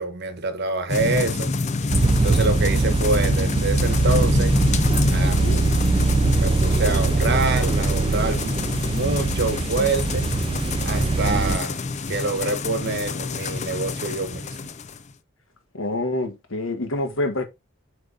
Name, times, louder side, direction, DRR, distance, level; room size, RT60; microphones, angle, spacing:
voice 1, 0.0-1.5 2.2-4.6 5.1-5.8 6.3-10.3 10.8-11.8 12.1-14.7, right 3 dB, 60° right, 1.2 m, -26 dB
sound 1, 0.9-15.0, left 3 dB, 35° left, 0.5 m, -26 dB
sound 2, 1.9-11.6, right 3 dB, 25° right, 0.3 m, -22 dB
voice 2, 5.2-5.7 15.7-17.4, left 2 dB, 90° left, 1.7 m, -27 dB
7.8 x 3.6 x 3.8 m
head